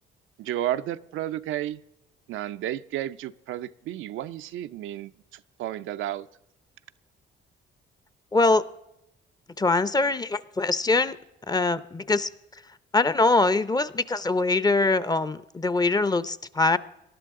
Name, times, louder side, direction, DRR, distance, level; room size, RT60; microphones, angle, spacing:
voice 1, 0.4-1.8 2.3-6.3, right 12 dB, 85° right, 10 dB, 0.5 m, -32 dB
voice 2, 8.3-8.6 9.6-11.2 11.5-12.3 12.9-16.8, left 3 dB, 20° left, 15 dB, 0.6 m, -23 dB
19.0 x 12.0 x 3.7 m, 0.86 s
cardioid pair, 90°, 20 cm